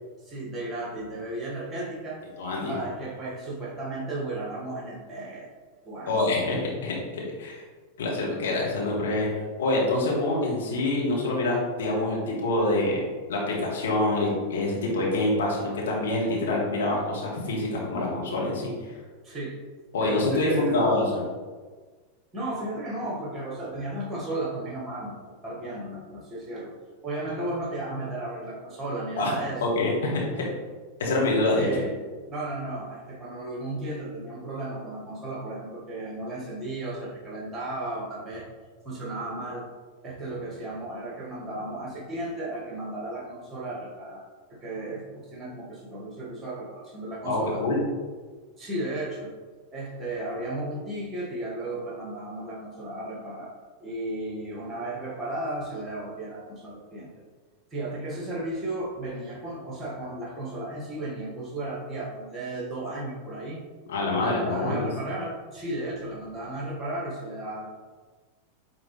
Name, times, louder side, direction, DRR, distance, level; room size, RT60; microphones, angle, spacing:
voice 1, 0.2-2.2 2.6-5.5 5.9-6.2 19.2-19.6 20.0-20.8 22.3-25.2 25.4-26.7 27.0-29.6 31.6-31.9 32.3-38.5 38.8-39.7 40.0-44.3 44.5-47.6 48.6-49.3 49.7-53.5 53.8-57.1 57.7-63.6 64.2-67.7, right 2 dB, 20° right, -4 dB, 1.7 m, -34 dB
voice 2, 2.4-2.7 6.1-7.6 8.0-9.3 9.6-18.9 19.9-21.2 29.2-29.3 29.6-30.5 31.0-31.8 47.3-47.8 63.9-64.9, left 2 dB, 60° left, -3 dB, 1.7 m, -26 dB
8.6 x 3.7 x 3.3 m, 1.4 s
figure-of-eight pair, 90°, 0 cm